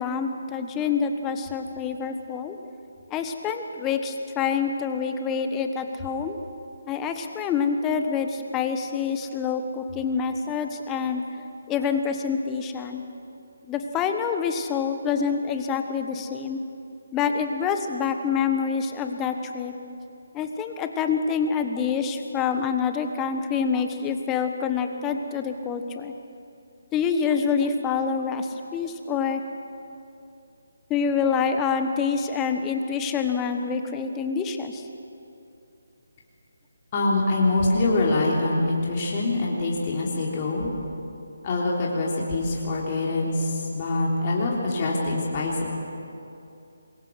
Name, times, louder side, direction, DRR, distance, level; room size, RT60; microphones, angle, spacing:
voice 1, 0.0-2.6 3.1-6.4 6.9-11.2 11.7-13.0 13.7-16.6 17.1-19.7 20.3-26.1 26.9-29.4 30.9-34.8, left 6 dB, 15° left, 7 dB, 1.3 m, -26 dB
voice 2, 36.9-40.7 41.4-45.7, left 2 dB, 30° left, -4 dB, 3.5 m, -24 dB
26.5 x 22.0 x 6.4 m, 2.7 s
figure-of-eight pair, 150°, 0 cm